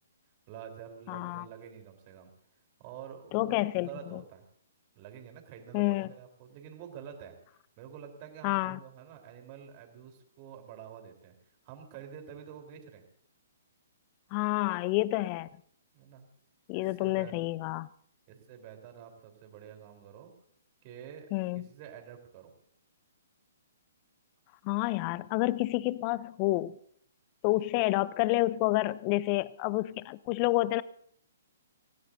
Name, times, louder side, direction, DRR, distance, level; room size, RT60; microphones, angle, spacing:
voice 1, 0.5-2.3 2.8-4.5 4.9-7.4 7.8-11.3 11.6-13.0 15.9-16.3 16.7-17.4 18.3-20.3 20.8-22.5, right 8 dB, 35° right, 3.9 m, -48 dB
voice 2, 1.1-1.4 3.3-4.2 5.7-6.1 8.4-8.8 14.3-15.5 16.7-17.9 21.3-21.6 24.6-26.8 27.4-30.8, left 19 dB, 35° left, 0.5 m, -29 dB
26.0 x 16.0 x 2.7 m
figure-of-eight pair, 125°, 0 cm